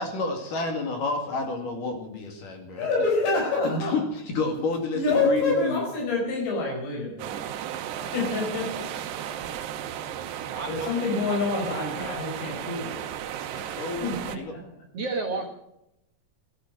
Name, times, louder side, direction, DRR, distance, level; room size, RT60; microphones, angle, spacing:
voice 1, 0.0-3.1 3.6-4.0 4.3-5.8 13.5-14.5, left 3 dB, 55° left, 4 dB, 3.5 m, -30 dB
voice 2, 2.7-4.0 4.9-7.5 8.0-8.9 10.7-13.0 13.5-14.6, left 3 dB, 80° left, 0 dB, 7.0 m, -27 dB
sound 1, 7.2-14.4, right 10 dB, 75° right, 3.0 m, -35 dB
voice 3, 10.4-11.0 11.3-12.2 14.9-15.5, right 3 dB, 60° right, 2 dB, 1.6 m, -33 dB
14.5 x 12.5 x 6.2 m, 0.84 s
omnidirectional pair, 4.9 m